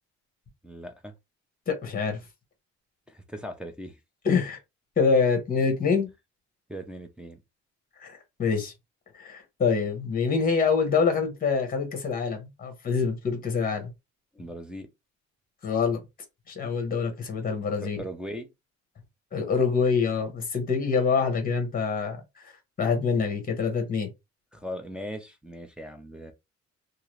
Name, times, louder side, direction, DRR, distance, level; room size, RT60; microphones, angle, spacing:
voice 1, 0.6-1.1 3.1-4.0 6.7-7.4 14.3-14.9 17.8-18.5 24.5-26.3, equal, 5° right, 0.3 m, -39 dB
voice 2, 1.7-2.2 4.2-4.6 5.0-6.1 8.0-8.7 9.2-13.9 15.6-16.0 16.5-18.0 19.3-22.2 22.4-22.5 22.8-24.1, left 5 dB, 30° left, 0.9 m, -25 dB
2.8 x 2.4 x 3.0 m
cardioid pair, 175°, 29 cm